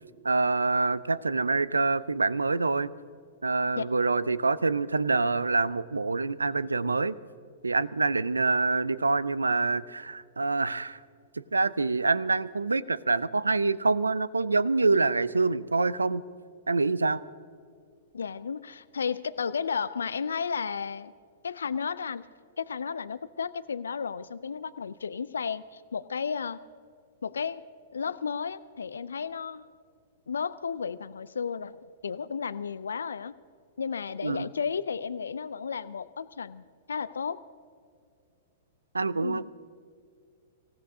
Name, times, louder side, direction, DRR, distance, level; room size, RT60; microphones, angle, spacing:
voice 1, 0.2-2.9 3.4-7.2 7.6-11.0 11.5-16.2 16.7-17.2 34.2-34.5 38.9-39.5, right 3 dB, 85° right, 19 dB, 0.5 m, -26 dB
voice 2, 18.1-21.1 21.4-22.3 22.6-26.6 27.2-27.6 27.9-29.6 30.3-31.8 32.0-33.3 33.8-37.4 39.2-39.5, left 6 dB, 75° left, 16 dB, 0.4 m, -33 dB
25.5 x 16.0 x 2.7 m, 2.3 s
figure-of-eight pair, 105°, 0 cm